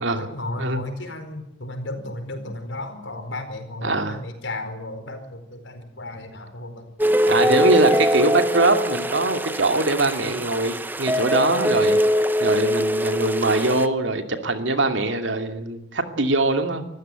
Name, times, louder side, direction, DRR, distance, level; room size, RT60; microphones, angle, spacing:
voice 1, 0.2-8.0, left 1 dB, 80° left, 7 dB, 4.7 m, -34 dB
voice 2, 3.8-4.2 7.3-12.0 12.4-16.9, right 2 dB, 80° right, 6 dB, 2.6 m, -22 dB
sound 1, 7.0-13.9, equal, 10° right, 0.9 m, -22 dB
25.0 x 15.0 x 9.2 m, 0.80 s
head